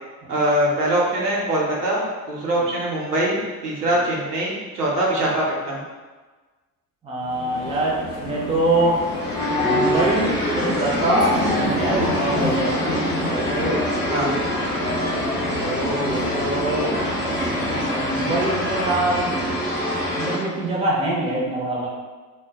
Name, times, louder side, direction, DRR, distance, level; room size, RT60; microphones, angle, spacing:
voice 1, 0.3-5.8 14.1-14.3, right 1 dB, 85° right, -4 dB, 0.6 m, -23 dB
voice 2, 7.0-9.0 9.5-12.7 13.3-13.8 14.8-17.0 17.5-19.4 20.1-21.9, right 1 dB, 15° right, -3 dB, 0.6 m, -24 dB
sound 1, 7.2-18.1, left 2 dB, 60° left, 0.7 m, -28 dB
sound 2, 8.9-20.4, equal, 20° left, 0.9 m, -26 dB
2.1 x 2.0 x 3.4 m, 1.3 s
figure-of-eight pair, 60°, 46 cm